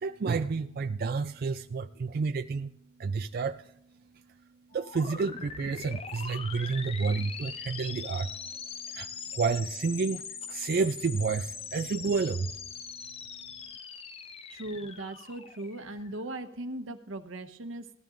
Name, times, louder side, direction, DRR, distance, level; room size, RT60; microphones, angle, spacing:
voice 1, 0.0-2.7 3.0-3.7 4.7-8.3 8.9-12.5, right 4 dB, 50° right, 7 dB, 0.4 m, -30 dB
sound 1, 4.7-16.4, left 6 dB, 30° left, 0.6 m, -42 dB
voice 2, 14.5-17.9, right 1 dB, 80° right, 9 dB, 1.0 m, -38 dB
18.5 x 13.5 x 2.5 m, 0.78 s
head